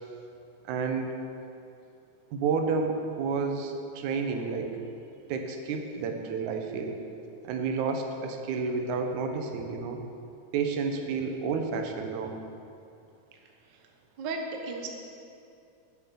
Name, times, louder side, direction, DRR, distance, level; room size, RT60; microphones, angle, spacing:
voice 1, 0.6-1.2 2.3-4.8 5.3-7.0 7.4-10.0 10.5-12.3, right 5 dB, 80° right, 4 dB, 2.3 m, -30 dB
voice 2, 14.2-14.9, right 3 dB, 55° right, 2 dB, 1.3 m, -34 dB
10.5 x 8.2 x 6.9 m, 2.6 s
omnidirectional pair, 3.4 m